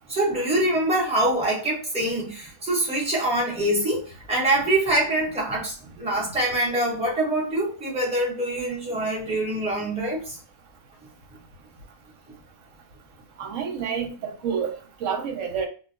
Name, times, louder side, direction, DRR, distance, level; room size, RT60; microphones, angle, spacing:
voice 1, 0.1-10.4, right 1 dB, 5° right, 0.8 m, -24 dB
voice 2, 13.4-15.7, right 7 dB, 85° right, 1.0 m, -29 dB
2.3 x 2.1 x 3.6 m
omnidirectional pair, 1.3 m